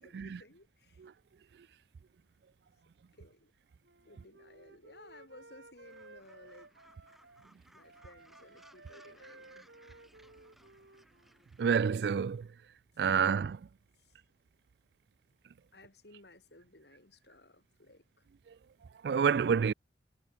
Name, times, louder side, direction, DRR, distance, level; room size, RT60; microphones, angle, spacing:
voice 1, 0.0-1.0 3.2-3.5 4.0-7.0 7.7-9.7 15.7-18.0, left 2 dB, 70° left, 4.6 m, -57 dB
Wind instrument woodwind instrument, 3.8-7.5 7.8-11.4, right 2 dB, 85° right, 5.5 m, -57 dB
Gull seagull, 5.8-11.7, equal, ahead, 3.1 m, -63 dB
voice 2, 11.6-12.5 13.0-13.6 19.0-19.7, right 6 dB, 65° right, 0.3 m, -28 dB
head